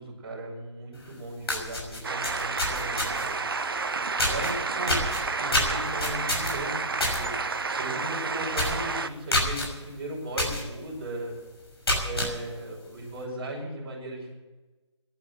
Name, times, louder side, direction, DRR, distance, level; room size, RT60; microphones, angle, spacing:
voice 1, 0.0-3.3 4.3-5.1 5.4-7.3 7.8-11.3 12.0-14.4, right 1 dB, 20° right, -4 dB, 5.8 m, -37 dB
sound 1, 1.0-1.1 1.4-3.4 4.2-4.5 4.9-7.2 7.6-7.8 8.1-8.2 8.5-8.8 9.3-9.7 10.4-10.6 11.1-11.2 11.7-12.3, left 1 dB, 55° left, 6.1 m, -27 dB
sound 2, 2.0-9.1, right 4 dB, 50° right, 0.9 m, -30 dB
15.0 x 11.5 x 8.1 m, 1.2 s
figure-of-eight pair, 150°, 16 cm